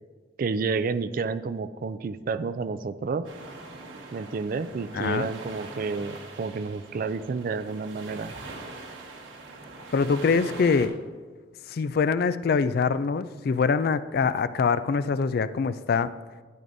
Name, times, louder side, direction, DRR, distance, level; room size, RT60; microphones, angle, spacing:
voice 1, 0.4-3.3 4.1-8.3, right 4 dB, 45° right, 13 dB, 0.3 m, -30 dB
sound 1, 3.2-10.9, right 3 dB, 80° right, 1.3 m, -42 dB
voice 2, 4.9-5.3 9.9-10.9 11.7-16.1, left 5 dB, 50° left, 14 dB, 0.3 m, -24 dB
12.0 x 9.4 x 2.6 m, 1.4 s
head